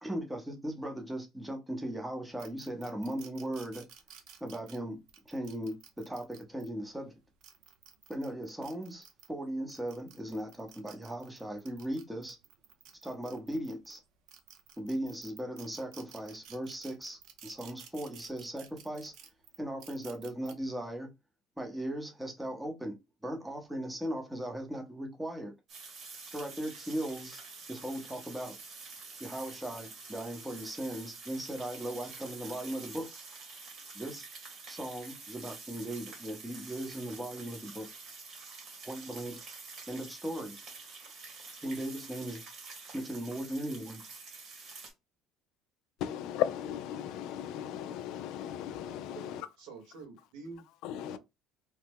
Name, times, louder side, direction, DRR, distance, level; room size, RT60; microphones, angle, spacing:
voice 1, 0.0-3.8 4.4-5.0 5.3-7.1 8.1-12.4 13.0-14.0 14.8-19.1 19.6-21.1 21.6-23.0 23.2-25.5 26.3-27.4 27.7-28.6 29.2-33.1 33.9-34.3 34.7-37.9 38.8-39.4 39.9-40.6 41.6-42.4 42.9-44.0, right 1 dB, 5° right, 0.8 m, -38 dB
sound 1, 2.4-6.7 7.2-9.3 9.7-14.0 14.3-20.5, right 8 dB, 65° right, 0.7 m, -53 dB
sound 2, 25.7-44.9, right 4 dB, 50° right, 1.5 m, -48 dB
voice 2, 46.0-49.5 50.8-51.2, left 11 dB, 70° left, 0.3 m, -36 dB
voice 3, 49.1-50.6, right 4 dB, 85° right, 1.4 m, -47 dB
3.0 x 2.1 x 3.5 m
cardioid pair, 130°, 0 cm